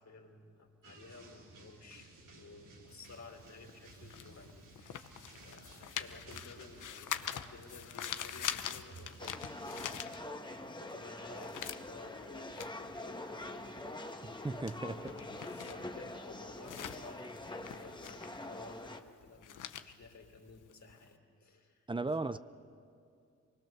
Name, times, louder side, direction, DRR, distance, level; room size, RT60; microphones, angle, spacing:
voice 1, 0.0-22.4, left 3 dB, 60° left, 3.4 m, -55 dB
sound 1, 0.8-10.0, right 3 dB, 85° right, 2.5 m, -56 dB
sound 2, 2.9-10.7 11.0-21.1, left 9 dB, 75° left, 0.8 m, -44 dB
sound 3, 9.2-19.0, left 2 dB, 15° left, 1.4 m, -45 dB
voice 2, 14.2-15.0 21.9-22.4, right 3 dB, 15° right, 0.7 m, -36 dB
24.5 x 20.0 x 6.8 m
cardioid pair, 60°, 31 cm